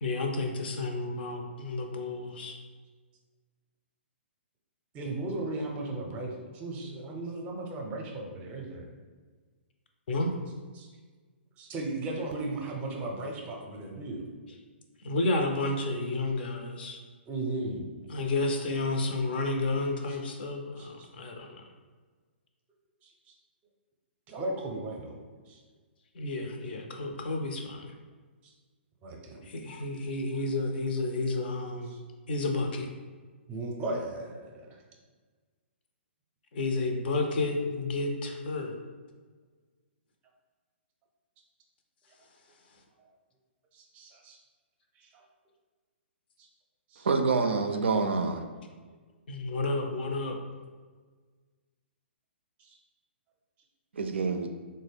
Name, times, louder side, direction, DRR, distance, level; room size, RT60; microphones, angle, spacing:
voice 1, 0.0-2.6 10.1-10.3 15.0-17.0 18.1-21.5 26.1-27.9 29.4-31.9 32.3-32.9 36.5-38.8 49.3-50.4, left 2 dB, 55° left, 0.5 m, -31 dB
voice 2, 4.9-8.9 10.7-10.9 11.6-14.2 17.3-17.9 20.1-20.2 20.8-21.1 23.0-23.1 24.3-25.2 25.5-25.6 27.1-27.2 28.4-28.5 29.0-29.4 31.9-32.0 33.5-34.8 43.7-44.4 46.4-46.5 46.9-47.1 52.6-52.8, right 2 dB, 25° right, 0.6 m, -36 dB
voice 3, 47.0-48.4 53.9-54.5, right 4 dB, 75° right, 0.3 m, -27 dB
3.8 x 2.1 x 3.3 m
figure-of-eight pair, 125°, 6 cm